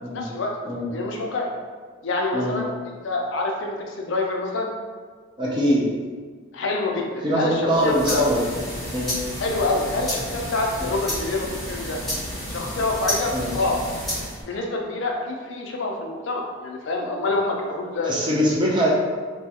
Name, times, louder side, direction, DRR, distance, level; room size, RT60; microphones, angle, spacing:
voice 1, 0.1-0.5 0.9-1.5 2.0-2.7 3.0-4.7 6.5-8.2 9.4-12.0 12.5-13.8 14.4-18.1, left 2 dB, 60° left, 0 dB, 0.4 m, -26 dB
voice 2, 5.4-5.9 7.2-8.5 8.9-9.1 13.3-13.5 18.0-18.9, equal, 20° right, -4 dB, 0.4 m, -22 dB
sound 1, 7.7-14.4, equal, ahead, 0.9 m, -31 dB
3.0 x 2.3 x 2.7 m, 1.5 s
head